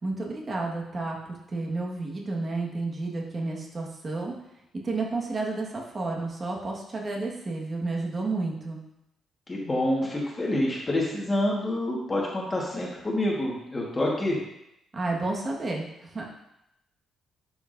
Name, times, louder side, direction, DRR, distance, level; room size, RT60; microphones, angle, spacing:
voice 1, 0.0-4.3 4.8-8.8 14.9-16.3, right 3 dB, 30° right, -1 dB, 1.5 m, -31 dB
voice 2, 9.5-14.4, left 1 dB, 20° left, -3 dB, 1.5 m, -27 dB
11.5 x 5.8 x 2.6 m, 0.84 s
cardioid pair, 140°, 0 cm